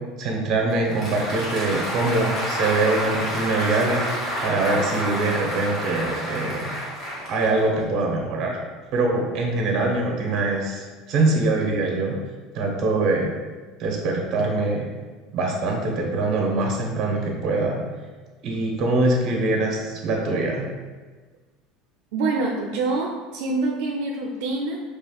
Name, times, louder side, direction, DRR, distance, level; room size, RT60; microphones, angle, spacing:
voice 1, 0.2-6.7 7.3-8.6 8.9-12.1 12.5-13.3 13.8-14.9 15.3-17.8 18.4-20.7, right 2 dB, 40° right, 0 dB, 0.9 m, -23 dB
Applause, 0.7-7.8, equal, 25° left, 1.4 m, -29 dB
voice 2, 22.1-24.8, right 3 dB, 70° right, -1 dB, 0.5 m, -26 dB
5.3 x 3.4 x 2.3 m, 1.3 s
cardioid pair, 165°, 0 cm